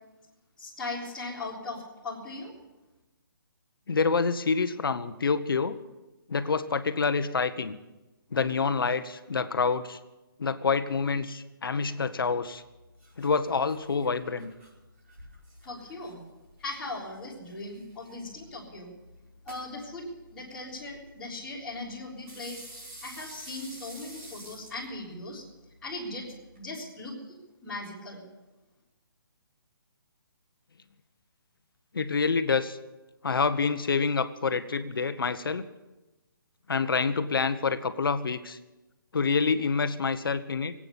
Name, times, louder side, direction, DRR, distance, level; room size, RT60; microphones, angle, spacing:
voice 1, 0.6-2.5 15.6-16.2 16.6-18.9 19.4-22.7 23.0-25.4 25.8-26.2 26.5-28.2, left 2 dB, 5° left, -11 dB, 3.8 m, -39 dB
voice 2, 3.9-5.8 6.3-7.8 8.3-10.0 10.4-12.6 13.2-14.5 31.9-32.8 33.2-35.7 36.7-38.6 39.1-40.7, left 5 dB, 70° left, 11 dB, 1.2 m, -27 dB
sound 1, 12.4-26.7, right 1 dB, 35° right, 5.2 m, -51 dB
22.0 x 8.9 x 7.2 m, 1.1 s
hypercardioid pair, 180°, 12 cm